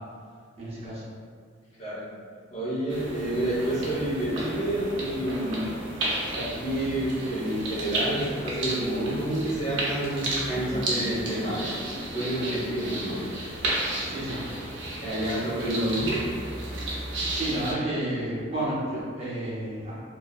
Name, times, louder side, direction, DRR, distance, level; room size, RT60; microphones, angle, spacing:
voice 1, 0.6-1.0 14.0-14.4 17.3-20.0, right 1 dB, 30° right, -9 dB, 0.7 m, -31 dB
voice 2, 2.5-5.6 6.3-11.7 12.1-13.2 15.0-16.2, right 1 dB, 35° left, -9 dB, 0.8 m, -29 dB
sound 1, 2.9-17.7, right 1 dB, 70° right, 0.6 m, -33 dB
sound 2, 9.1-13.0 13.2-13.5 14.3-14.4, equal, 10° left, 0.4 m, -41 dB
2.7 x 2.3 x 2.4 m, 2.1 s
head